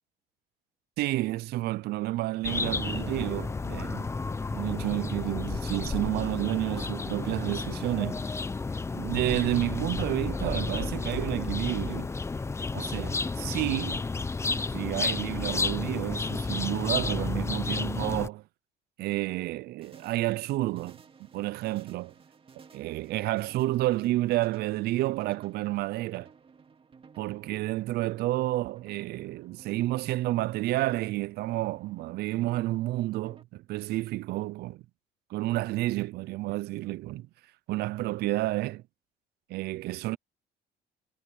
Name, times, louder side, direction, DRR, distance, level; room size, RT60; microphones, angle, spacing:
voice 1, 1.0-4.1 4.5-8.3 8.9-12.1 12.7-14.0 14.5-18.4 19.0-22.1 22.7-26.3 27.2-34.8 35.3-37.3 37.7-38.8 39.5-40.2, right 17 dB, 75° right, 0.5 m, -30 dB
sound 1, 2.4-18.3, left 4 dB, 15° left, 0.6 m, -31 dB
sound 2, 19.8-33.4, right 5 dB, 35° right, 2.3 m, -56 dB
cardioid pair, 110°, 17 cm